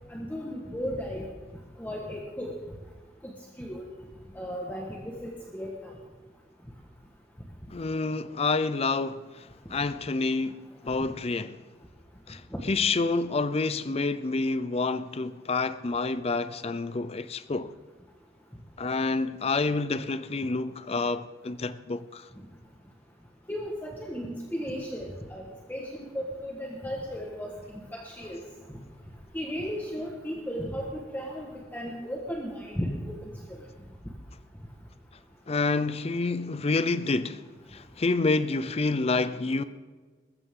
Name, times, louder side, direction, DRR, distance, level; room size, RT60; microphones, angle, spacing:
voice 1, 0.1-1.2 1.8-2.5 3.2-3.3 3.6-3.8 4.3-5.9 12.5-12.6 23.5-28.4 29.3-33.1 33.5-33.6, equal, 10° left, 1.5 m, -35 dB
voice 2, 7.7-11.6 12.3-17.7 18.8-22.3 35.5-37.4 37.7-39.6, left 3 dB, 35° left, 0.5 m, -28 dB
20.5 x 14.5 x 3.8 m
head